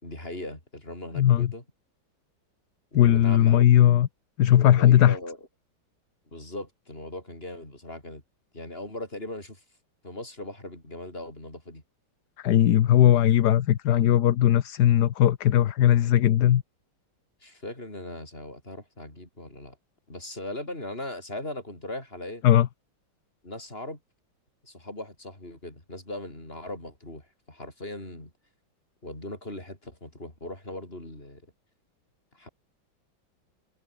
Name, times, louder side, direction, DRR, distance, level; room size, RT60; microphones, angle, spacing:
voice 1, 0.0-1.6 2.9-3.7 4.6-5.5 6.3-8.2 8.5-9.6 10.0-11.8 17.4-19.8 20.1-22.4 23.4-24.0 24.6-28.3 29.0-31.4 32.3-32.5, left 1 dB, 30° left, 6.8 m, -39 dB
voice 2, 1.2-1.5 2.9-4.1 4.4-5.2 12.4-16.6 22.4-22.7, left 11 dB, 60° left, 1.3 m, -19 dB
omnidirectional pair, 2.1 m